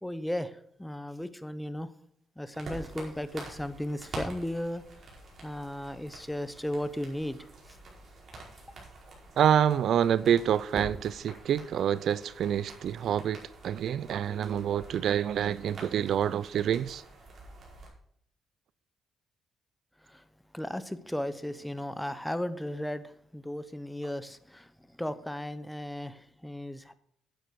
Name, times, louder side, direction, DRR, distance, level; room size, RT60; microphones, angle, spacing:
voice 1, 0.0-1.9 2.4-4.8 5.4-7.8 20.0-20.3 20.5-26.9, left 1 dB, 5° left, 0.9 m, -36 dB
sound 1, 2.5-17.9, right 2 dB, 50° right, 5.0 m, -47 dB
voice 2, 9.4-17.0, right 9 dB, 70° right, 0.5 m, -27 dB
10.5 x 9.1 x 4.8 m
cardioid pair, 90°, 0 cm